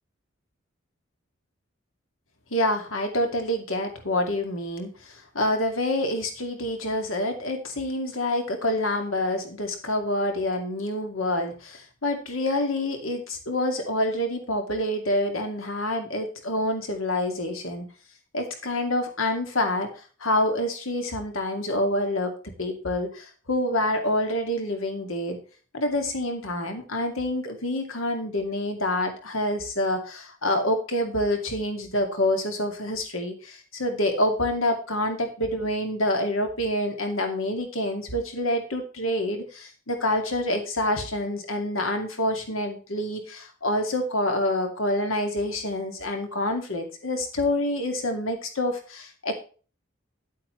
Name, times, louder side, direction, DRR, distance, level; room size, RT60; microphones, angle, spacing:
voice 1, 2.5-4.9 5.3-17.9 18.3-19.9 20.2-22.3 22.6-25.4 25.7-49.3, left 1 dB, 90° left, 4 dB, 2.4 m, -27 dB
10.5 x 8.7 x 3.2 m, 0.37 s
head